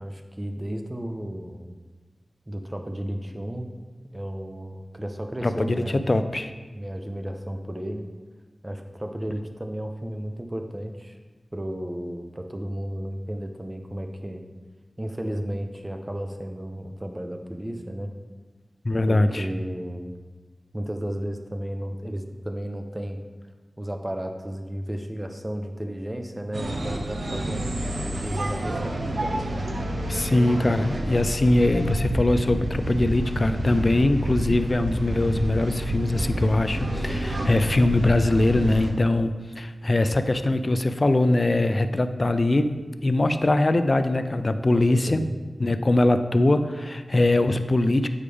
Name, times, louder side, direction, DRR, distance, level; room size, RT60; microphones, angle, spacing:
voice 1, 0.0-1.8 2.5-3.7 4.1-6.1 6.7-8.0 8.6-11.2 11.5-14.4 15.0-18.1 19.1-20.1 20.7-23.2 23.8-27.7 28.2-29.4 44.7-45.3, equal, 20° right, 5 dB, 0.7 m, -33 dB
voice 2, 5.4-6.5 18.8-19.5 30.1-45.3 45.6-48.1, left 2 dB, 40° left, 10 dB, 0.4 m, -22 dB
sound 1, 26.5-38.9, right 1 dB, 75° right, 0.7 m, -29 dB
8.7 x 4.9 x 3.4 m, 1.3 s
wide cardioid pair, 80°, 0 cm